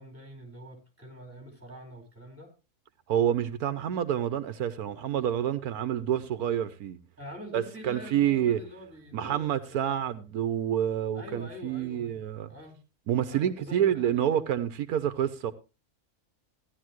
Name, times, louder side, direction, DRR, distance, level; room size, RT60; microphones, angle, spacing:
voice 1, 0.0-2.5 7.2-9.9 11.1-12.8 13.2-14.4, left 1 dB, 10° right, 4.7 m, -45 dB
voice 2, 3.1-7.0 7.5-8.6 9.1-12.5 13.1-15.5, right 10 dB, 80° right, 1.3 m, -28 dB
16.0 x 11.0 x 3.0 m
omnidirectional pair, 1.6 m